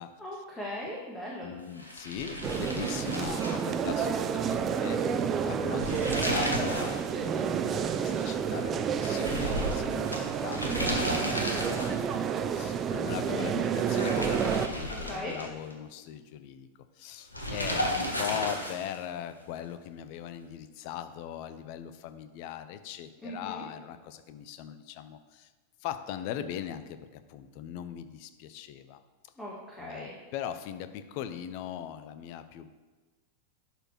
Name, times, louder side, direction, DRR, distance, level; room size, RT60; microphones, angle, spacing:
voice 1, 0.2-1.5 10.7-11.1 14.9-15.4 23.2-23.6 29.4-30.1, equal, 10° left, -5 dB, 1.6 m, -39 dB
voice 2, 1.4-10.6 11.3-16.7 17.0-25.5 25.8-29.0 29.8-32.7, left 10 dB, 45° left, 11 dB, 0.6 m, -40 dB
sound 1, 1.8-4.2 4.5-4.6 5.6-7.0 7.3-7.4 9.0-12.1 13.7-15.7 17.3-19.0, equal, 85° left, 1.2 m, -34 dB
sound 2, 2.4-14.7, right 7 dB, 25° right, 0.5 m, -30 dB
11.5 x 4.4 x 4.4 m, 1.3 s
figure-of-eight pair, 90°, 0 cm